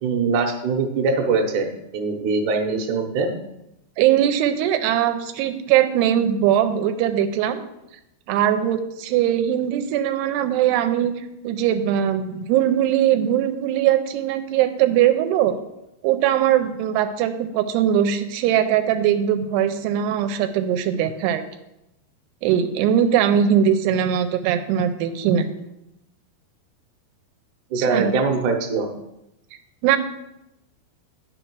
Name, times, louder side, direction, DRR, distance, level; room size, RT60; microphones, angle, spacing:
voice 1, 0.0-3.3 27.7-28.9, right 4 dB, 65° right, 2 dB, 2.0 m, -22 dB
voice 2, 4.0-7.6 8.3-11.1 11.4-15.6 16.0-21.4 22.4-25.5 27.8-28.1 29.8-30.0, right 10 dB, 85° right, 8 dB, 2.6 m, -20 dB
10.0 x 5.9 x 4.6 m, 0.87 s
omnidirectional pair, 4.7 m